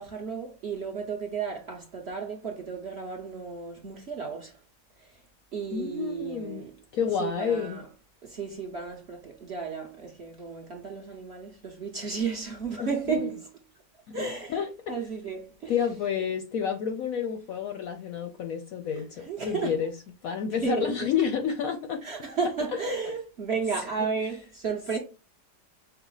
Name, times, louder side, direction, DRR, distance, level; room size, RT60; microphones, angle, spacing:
voice 1, 0.0-4.5 5.5-6.7 7.2-7.8 8.2-13.5 14.1-14.6 14.9-15.8 19.2-19.8 20.6-21.1 22.0-25.0, right 5 dB, 50° right, 0.9 m, -33 dB
voice 2, 5.7-6.6 6.9-7.8 12.8-12.9 13.2-13.3 14.1-14.2 14.5-14.9 15.7-19.9 20.2-22.0 23.1-23.2, left 7 dB, 65° left, 0.9 m, -29 dB
5.7 x 2.0 x 3.8 m
omnidirectional pair, 1.9 m